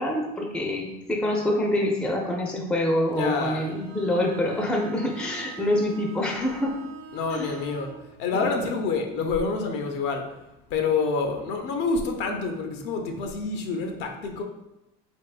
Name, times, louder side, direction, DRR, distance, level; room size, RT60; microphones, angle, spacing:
voice 1, 0.0-6.8 7.3-7.5 8.3-8.6, left 1 dB, 5° left, 1 dB, 0.4 m, -26 dB
Bowed string instrument, 3.1-8.0, right 8 dB, 45° right, 0.6 m, -45 dB
voice 2, 3.2-3.6 7.1-7.9 8.2-10.3 10.7-14.4, left 4 dB, 65° left, 4 dB, 0.5 m, -27 dB
3.4 x 2.9 x 2.4 m, 0.93 s
supercardioid pair, 100°, 19 cm